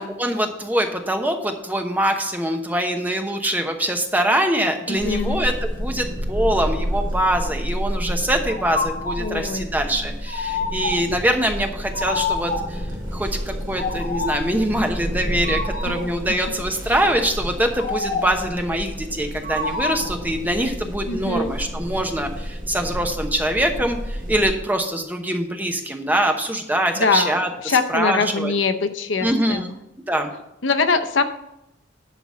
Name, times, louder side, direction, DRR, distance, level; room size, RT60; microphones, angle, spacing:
voice 1, 0.2-12.9 13.1-28.5 29.2-29.7 30.1-30.3, right 1 dB, 10° right, 4 dB, 0.9 m, -23 dB
voice 2, 4.9-5.4 9.2-9.7 15.9-16.1 21.1-21.5 27.0-29.7 30.6-31.2, left 4 dB, 75° left, 9 dB, 0.7 m, -23 dB
sound 1, 5.0-24.5, equal, 45° right, 2.2 m, -30 dB
sound 2, 8.5-9.3 10.3-11.2 11.9-12.8 13.7-14.6 15.4-16.1 17.8-18.5 19.4-20.2, left 3 dB, 45° left, 1.1 m, -28 dB
11.0 x 3.9 x 7.5 m, 0.86 s
head